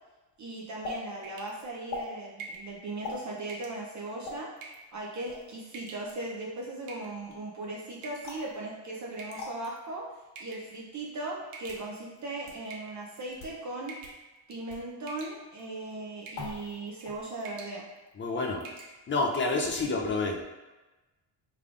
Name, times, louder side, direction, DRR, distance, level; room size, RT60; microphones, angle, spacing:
voice 1, 0.4-4.5 4.9-10.0 10.4-13.9 14.5-17.8 19.8-19.9, right 2 dB, 35° right, -3 dB, 0.6 m, -38 dB
sound 1, 0.8-1.0 1.9-2.1 3.0-3.2 4.2-4.4 5.3-5.5 8.2-8.5 9.4-9.5 10.5-10.6 11.4-11.9 12.5-12.6 13.3-13.6 14.0-14.1 14.7-14.9 16.3-16.8 17.0-17.5, left 3 dB, 75° left, 1.4 m, -40 dB
sound 2, 1.2-1.6 2.4-2.7 3.5-3.8 4.6-4.9 5.7-6.1 6.9-7.3 8.0-8.4 9.2-9.8 10.4-10.7 11.5-12.2 12.7-13.3 13.9-14.2 14.5-14.8 15.1-15.6 16.3-16.5 16.9-17.1 17.4-17.8 18.1-18.2 18.6-18.9, right 3 dB, 75° right, 0.8 m, -45 dB
voice 2, 18.2-18.6 19.1-20.4, left 3 dB, 25° left, 1 dB, 0.5 m, -28 dB
3.4 x 3.4 x 2.4 m, 1.1 s
cardioid pair, 90°, 49 cm